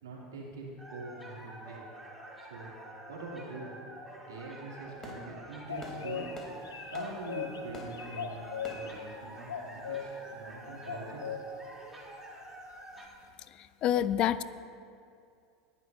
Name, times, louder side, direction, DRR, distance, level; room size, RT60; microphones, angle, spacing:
voice 1, 0.0-1.8 2.5-2.7 3.1-3.7 4.3-6.3 6.6-8.4 8.7-11.4, right 3 dB, 80° right, -3 dB, 2.9 m, -44 dB
sound 1, 0.8-13.1, right 1 dB, 10° right, 3.2 m, -48 dB
Fireworks, 4.7-10.3, left 1 dB, 25° left, 3.3 m, -50 dB
sound 2, 5.7-6.4 6.6-7.6 7.9-8.9 9.5-10.0 10.9-11.4, left 8 dB, 80° left, 1.1 m, -37 dB
voice 2, 13.6-14.4, left 11 dB, 45° left, 15 dB, 0.5 m, -28 dB
20.0 x 11.0 x 2.7 m, 2.4 s
hypercardioid pair, 80°, 2 cm